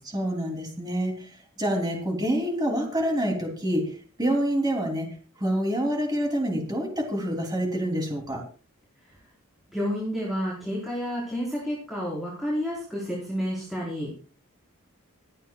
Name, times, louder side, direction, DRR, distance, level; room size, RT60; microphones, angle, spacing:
voice 1, 0.0-8.4, equal, 20° right, 1 dB, 2.9 m, -27 dB
voice 2, 9.7-14.1, equal, ahead, -7 dB, 4.0 m, -30 dB
26.5 x 9.1 x 2.3 m, 0.38 s
head